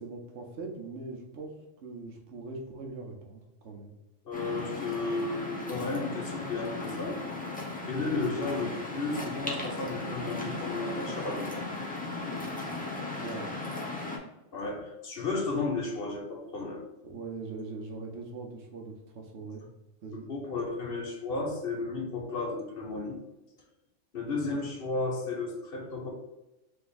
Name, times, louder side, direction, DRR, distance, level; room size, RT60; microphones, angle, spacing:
voice 1, 0.0-1.5 1.8-3.9 13.2-13.6 17.0-19.6 20.0-20.3 24.3-24.7, right 3 dB, 70° right, 2 dB, 1.0 m, -41 dB
voice 2, 4.2-7.2 7.8-11.6 14.5-16.8 20.1-23.2 24.1-26.1, left 3 dB, 55° left, 1 dB, 0.9 m, -33 dB
Waves surf, 4.3-14.2, left 2 dB, 10° left, 0.6 m, -36 dB
3.5 x 3.4 x 3.9 m, 1.0 s
omnidirectional pair, 1.3 m